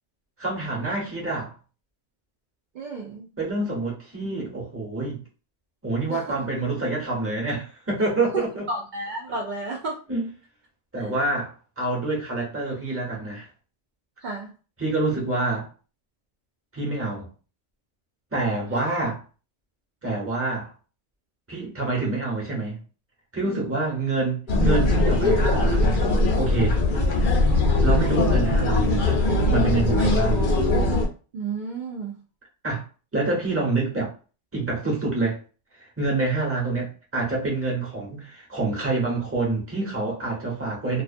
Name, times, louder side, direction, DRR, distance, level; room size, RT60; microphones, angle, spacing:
voice 1, 0.4-1.5 3.4-5.2 5.8-8.6 10.1-10.3 10.9-13.5 14.8-15.7 16.7-17.3 18.3-19.2 20.0-20.7 21.5-22.8 23.3-26.0 26.4-26.8 27.8-29.2 29.5-30.4 32.6-32.8 33.1-34.1 34.5-35.4 35.8-41.0, right 3 dB, 15° right, 0.7 m, -27 dB
voice 2, 2.7-3.3 6.1-6.4 8.7-10.0 11.0-11.1 14.2-14.5 18.8-18.9 23.4-23.8 31.3-32.1, right 3 dB, 75° right, 0.4 m, -32 dB
sound 1, 24.5-31.1, left 2 dB, 50° left, 0.7 m, -20 dB
2.3 x 2.3 x 2.4 m
omnidirectional pair, 1.4 m